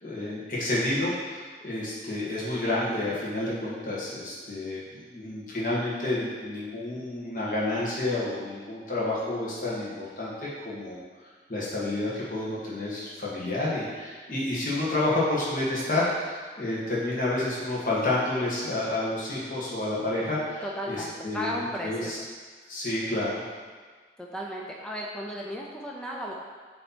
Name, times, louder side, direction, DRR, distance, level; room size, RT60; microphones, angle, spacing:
voice 1, 0.0-11.0 11.5-21.0 21.2-21.6 21.8-22.2 22.7-23.4, left 2 dB, 50° left, -7 dB, 1.6 m, -29 dB
voice 2, 20.6-22.1 24.2-26.3, equal, 5° left, -3 dB, 0.5 m, -34 dB
7.6 x 3.0 x 4.3 m, 1.5 s
head